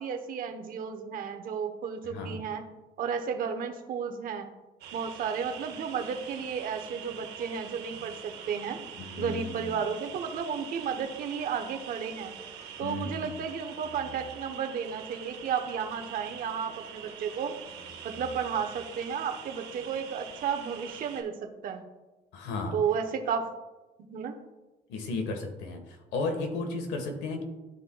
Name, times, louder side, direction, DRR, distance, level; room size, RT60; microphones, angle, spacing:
voice 1, 0.0-2.6 3.0-4.5 4.9-8.8 9.2-12.3 12.8-17.6 18.0-21.8 22.7-23.5 24.1-24.3, right 7 dB, 55° right, 5 dB, 0.9 m, -33 dB
voice 2, 2.0-2.4 9.0-9.8 12.8-13.4 22.3-22.7 24.9-27.4, left 3 dB, 90° left, 4 dB, 1.3 m, -34 dB
sound 1, 4.8-21.2, right 7 dB, 90° right, 1.2 m, -44 dB
12.5 x 4.3 x 2.2 m, 1.1 s
cardioid pair, 110°, 17 cm